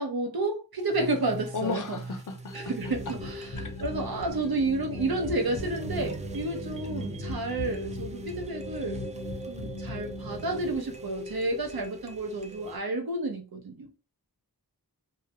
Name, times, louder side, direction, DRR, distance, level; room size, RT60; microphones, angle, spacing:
voice 1, 0.0-2.0 2.5-3.5 3.8-9.0 9.5-13.9, right 2 dB, 70° right, 0.7 m, -31 dB
sound 1, 0.8-12.8, right 3 dB, 20° right, 0.4 m, -42 dB
voice 2, 1.5-2.7 3.6-3.8, left 5 dB, 55° left, 0.6 m, -35 dB
sound 2, 2.8-10.8, left 2 dB, 80° left, 0.8 m, -38 dB
2.3 x 2.1 x 2.8 m
wide cardioid pair, 50°, 38 cm